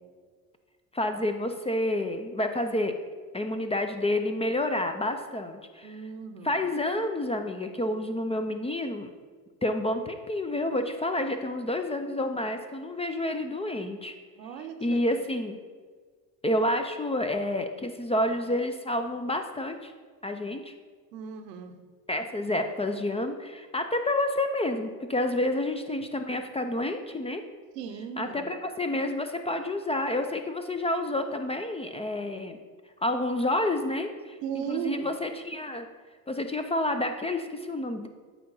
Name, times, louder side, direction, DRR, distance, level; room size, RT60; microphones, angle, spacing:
voice 1, 0.9-2.9 3.3-6.0 6.4-9.1 9.6-14.1 14.6-15.6 16.4-19.9 20.2-20.7 22.1-27.4 28.2-32.6 33.0-35.9 36.3-38.1, left 1 dB, 15° left, 7 dB, 0.3 m, -29 dB
voice 2, 5.8-6.5 14.4-15.2 21.1-21.7 27.7-28.5 34.4-35.1, right 7 dB, 90° right, 7 dB, 0.8 m, -36 dB
8.3 x 2.9 x 5.4 m, 1.5 s
hypercardioid pair, 70°, 47 cm